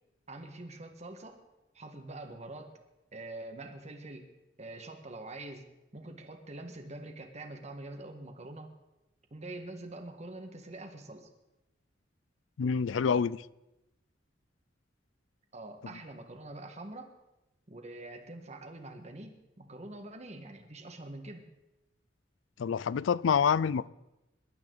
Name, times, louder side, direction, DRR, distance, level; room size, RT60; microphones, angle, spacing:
voice 1, 0.3-1.4 1.7-2.7 3.1-4.3 4.6-5.6 5.9-8.7 9.3-11.3 15.5-17.1 17.7-21.5, right 2 dB, 35° right, 1.7 m, -45 dB
voice 2, 12.6-13.4 22.6-23.9, left 6 dB, 90° left, 0.4 m, -27 dB
22.5 x 12.0 x 4.0 m
head